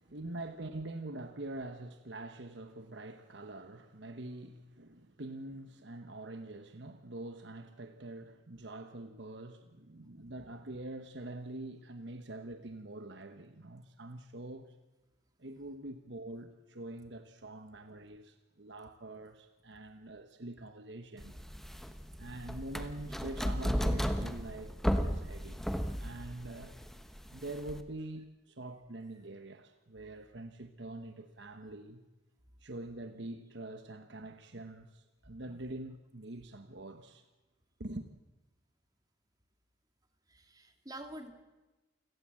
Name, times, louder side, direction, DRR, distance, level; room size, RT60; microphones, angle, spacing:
voice 1, 0.0-14.8 15.4-21.4 22.2-25.6 26.0-26.8 27.3-32.0 32.6-37.2 37.8-38.1, right 2 dB, 60° right, 1.1 m, -45 dB
sound 1, 21.2-27.8, equal, ahead, 1.1 m, -34 dB
voice 2, 40.3-41.3, right 1 dB, 20° right, 2.1 m, -47 dB
28.5 x 17.5 x 7.6 m
head